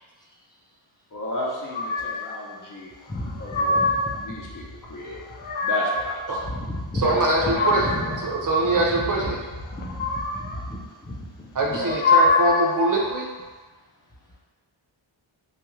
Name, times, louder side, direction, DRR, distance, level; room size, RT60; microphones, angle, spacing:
voice 1, 1.1-2.9 3.4-3.8 4.1-5.2 5.6-6.4 7.0-7.8 11.7-12.0, left 1 dB, 40° left, -4 dB, 0.7 m, -33 dB
sound 1, 1.7-2.3 3.1-4.2 5.1-6.1 7.1-8.2 9.7-10.6 11.7-12.7, left 3 dB, 90° left, 0.6 m, -24 dB
voice 2, 3.1-4.5 6.4-11.8, left 1 dB, 10° left, -5 dB, 0.4 m, -34 dB
voice 3, 7.0-7.9 8.2-9.4 11.6-13.3, right 2 dB, 40° right, -1 dB, 0.5 m, -23 dB
2.7 x 2.4 x 3.0 m, 1.4 s
wide cardioid pair, 105°, 49 cm